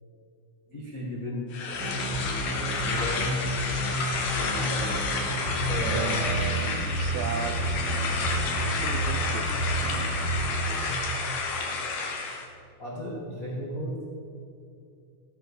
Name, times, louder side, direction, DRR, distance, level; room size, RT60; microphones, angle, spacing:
voice 1, 0.7-3.4 4.3-5.0 5.6-6.3 10.7-11.1 12.8-14.0, equal, 80° left, -4 dB, 0.7 m, -36 dB
sound 1, 1.5-12.5, left 4 dB, 60° left, 2.8 m, -30 dB
sound 2, 1.7-10.7, right 1 dB, 5° left, 2.4 m, -31 dB
voice 2, 5.9-7.8 8.8-9.5, right 7 dB, 80° right, 10 dB, 2.9 m, -36 dB
16.0 x 8.1 x 6.9 m, 2.6 s
omnidirectional pair, 5.2 m